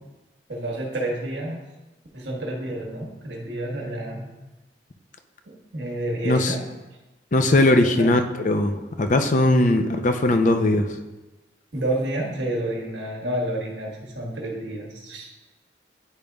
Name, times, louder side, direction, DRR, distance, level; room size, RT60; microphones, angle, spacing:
voice 1, 0.5-1.6 2.1-4.2 5.5-6.6 7.8-8.1 11.7-15.3, right 1 dB, 75° right, 0 dB, 1.3 m, -29 dB
voice 2, 6.2-6.5 7.3-10.9, left 1 dB, 45° left, 6 dB, 0.5 m, -19 dB
10.0 x 5.0 x 2.3 m, 1.1 s
head